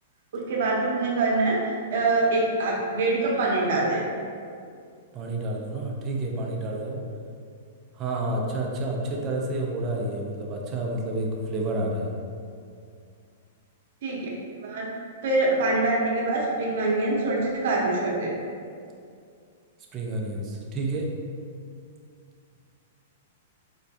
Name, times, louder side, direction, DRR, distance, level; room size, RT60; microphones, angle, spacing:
voice 1, 0.3-4.0 14.0-14.3 14.6-14.9 15.2-18.3, right 2 dB, 65° right, -2 dB, 0.8 m, -24 dB
voice 2, 5.1-7.0 8.0-12.1 19.9-21.1, right 2 dB, 30° right, -1 dB, 0.4 m, -29 dB
4.3 x 2.2 x 2.6 m, 2.3 s
hypercardioid pair, 130°, 0 cm